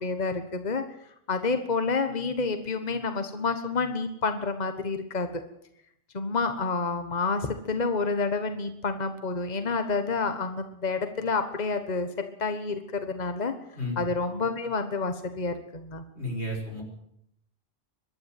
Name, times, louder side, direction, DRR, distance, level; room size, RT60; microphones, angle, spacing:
voice 1, 0.0-0.8 1.3-5.4 6.1-12.1 12.4-13.5 14.0-16.0, left 4 dB, 40° left, 8 dB, 1.4 m, -29 dB
voice 2, 16.1-16.8, left 1 dB, 90° left, 1 dB, 6.1 m, -32 dB
23.0 x 12.5 x 9.2 m, 0.74 s
omnidirectional pair, 1.1 m